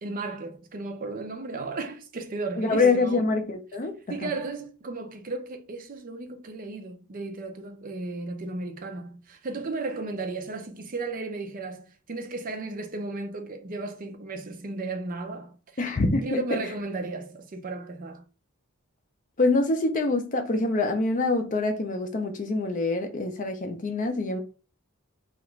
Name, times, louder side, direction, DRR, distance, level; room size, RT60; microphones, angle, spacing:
voice 1, 0.0-3.2 4.1-15.5 16.2-18.2, right 3 dB, 40° right, 0.5 m, -35 dB
voice 2, 2.6-4.3 15.8-16.6 19.4-24.4, left 3 dB, 35° left, 0.5 m, -25 dB
2.9 x 2.4 x 3.1 m
head